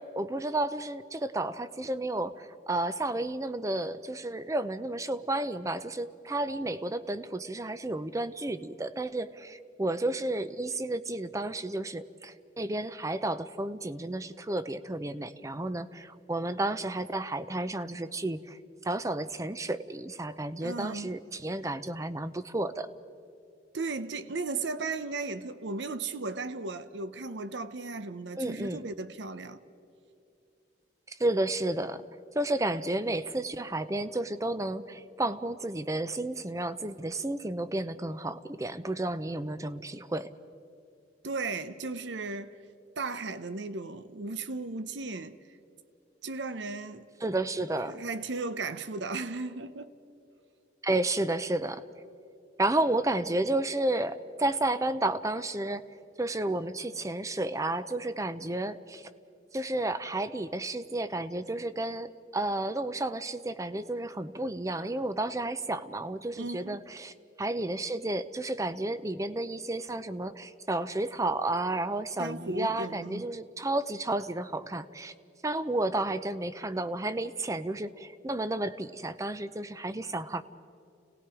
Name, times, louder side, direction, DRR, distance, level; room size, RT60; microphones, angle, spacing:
voice 1, 0.0-22.9 28.4-28.8 31.1-32.0 32.3-40.3 47.2-48.0 50.8-51.8 52.6-55.9 56.2-59.1 59.5-75.1 75.4-80.4, right 2 dB, 15° right, 0.6 m, -32 dB
voice 2, 20.6-21.1 23.7-29.6 41.2-42.6 43.0-45.4 46.2-47.1 47.9-49.9 66.4-66.8 72.2-73.3, right 3 dB, 70° right, 0.8 m, -35 dB
30.0 x 18.5 x 4.9 m
head